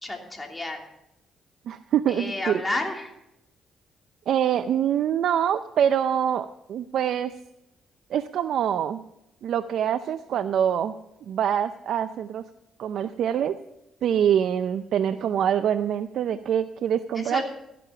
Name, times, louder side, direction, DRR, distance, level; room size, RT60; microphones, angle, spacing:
voice 1, 0.0-0.9 2.1-3.1 17.1-17.4, left 2 dB, 15° left, 1 dB, 3.0 m, -31 dB
voice 2, 1.7-2.6 4.3-7.3 8.1-9.0 9.4-10.9 11.3-12.4 12.8-13.6 14.0-17.4, right 9 dB, 70° right, 12 dB, 0.5 m, -25 dB
14.0 x 10.0 x 5.7 m, 0.86 s
cardioid pair, 90°, 0 cm